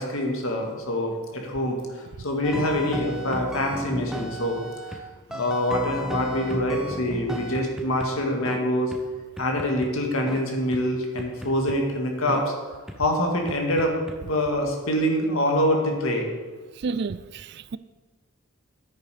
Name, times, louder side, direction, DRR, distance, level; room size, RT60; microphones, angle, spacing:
voice 1, 0.0-4.6 5.3-8.9 9.4-12.5 13.0-14.0 14.2-16.3, left 1 dB, 75° left, 2 dB, 2.0 m, -25 dB
sound 1, 2.4-5.0 5.3-8.1 8.5-8.6 8.9-9.0 9.4-9.9 10.3-10.4 10.7-10.8 11.2-11.8 12.3-12.4 12.9-13.0 13.5-14.2, equal, ahead, 0.7 m, -34 dB
voice 2, 16.8-17.8, right 4 dB, 50° right, 15 dB, 0.4 m, -30 dB
9.8 x 8.9 x 5.0 m, 1.3 s
head